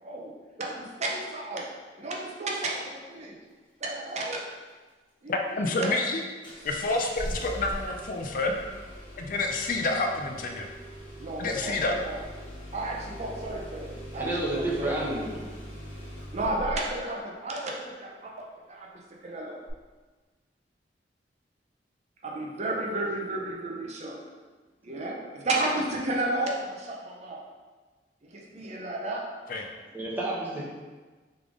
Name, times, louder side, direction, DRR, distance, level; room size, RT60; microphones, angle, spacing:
voice 1, 0.0-0.3 0.6-1.7 2.0-3.3 3.8-4.4 5.2-5.3 5.8-6.0 11.2-12.2 12.7-14.3 14.5-15.2 16.3-18.9 19.2-19.6 22.2-24.2 24.8-27.4 28.2-29.3, right 2 dB, 40° right, -1 dB, 0.6 m, -32 dB
voice 2, 5.3-6.2 6.6-8.5 9.2-10.7 11.4-11.9 29.5-29.7, left 2 dB, 50° left, 2 dB, 0.4 m, -28 dB
Engine starting, 6.4-17.0 19.7-19.8, equal, 30° left, 1.3 m, -41 dB
voice 3, 14.1-15.6 29.9-30.7, right 1 dB, 10° right, -5 dB, 0.9 m, -30 dB
3.5 x 3.4 x 3.6 m, 1.3 s
head